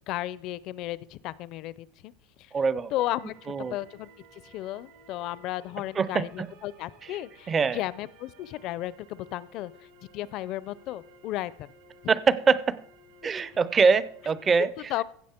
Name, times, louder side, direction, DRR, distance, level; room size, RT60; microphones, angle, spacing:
voice 1, 0.1-2.1 2.4-2.5 2.9-9.9 10.1-11.7 14.9-15.0, left 15 dB, 45° left, 0.4 m, -34 dB
voice 2, 2.5-2.9 3.5-3.7 6.0-6.5 7.5-7.8 12.1-12.8 13.2-14.7, right 5 dB, 20° right, 0.4 m, -23 dB
sound 1, 3.0-14.5, right 2 dB, 65° right, 1.8 m, -56 dB
16.0 x 7.1 x 4.4 m
supercardioid pair, 160°, 0 cm